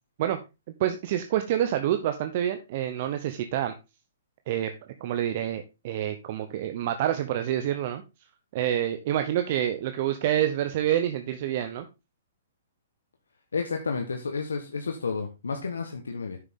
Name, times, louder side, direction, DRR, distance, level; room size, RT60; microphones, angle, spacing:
voice 1, 0.8-3.7 4.5-4.7 5.0-8.0 8.5-11.9, right 11 dB, 50° right, 0.9 m, -27 dB
voice 2, 13.5-16.4, left 4 dB, 85° left, 1.3 m, -31 dB
9.3 x 6.8 x 3.7 m
hypercardioid pair, 130°, 0 cm